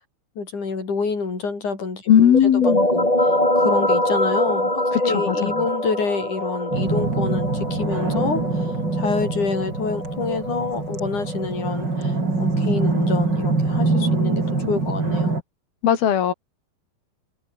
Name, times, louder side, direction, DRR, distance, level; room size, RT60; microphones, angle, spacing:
voice 1, 0.4-8.7 8.9-15.4, left 4 dB, 55° left, 7.2 m, -27 dB
voice 2, 2.1-2.9 5.3-5.4 15.8-16.3, left 9 dB, 85° left, 4.3 m, -16 dB
sound 1, 2.3-11.7, left 1 dB, 10° left, 7.0 m, -24 dB
sound 2, 6.7-15.4, right 3 dB, 30° right, 5.4 m, -24 dB
omnidirectional pair, 4.2 m